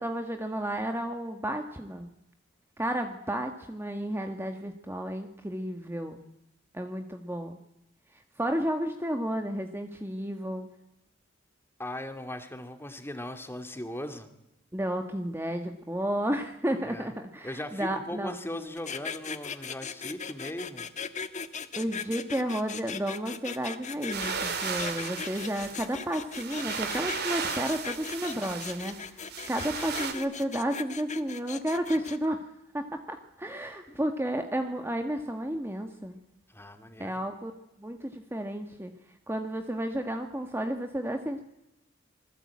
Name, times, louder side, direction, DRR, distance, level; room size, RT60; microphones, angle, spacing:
voice 1, 0.0-2.1 2.8-6.2 6.7-7.6 8.4-10.7 14.7-18.3 21.8-32.4 32.7-36.2 37.0-37.5 37.8-38.9 39.3-41.4, right 1 dB, 10° right, 5 dB, 1.5 m, -32 dB
voice 2, 11.8-14.3 16.9-17.1 17.4-20.9 33.9-34.0 36.5-37.2, left 1 dB, 10° left, 7 dB, 2.4 m, -38 dB
sound 1, 18.8-32.3, left 6 dB, 40° left, 1.3 m, -38 dB
sound 2, 24.1-30.1, right 6 dB, 55° right, 3.1 m, -35 dB
26.5 x 20.5 x 8.6 m, 0.84 s
head